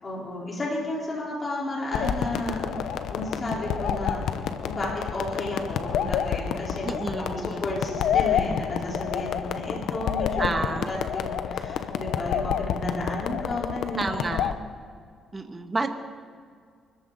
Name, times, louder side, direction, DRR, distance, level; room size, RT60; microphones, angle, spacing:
voice 1, 0.0-2.6 3.1-4.4 4.6-6.9 7.2-10.5 10.8-14.0 14.3-14.4, left 1 dB, 35° left, -4 dB, 4.3 m, -32 dB
sound 1, 1.9-14.5, left 8 dB, 80° left, 0.9 m, -29 dB
voice 2, 6.8-7.7 10.4-11.0 14.0-14.5 15.3-15.9, right 3 dB, 25° right, 5 dB, 1.5 m, -30 dB
24.5 x 14.0 x 4.1 m, 2.1 s
cardioid pair, 90°, 0 cm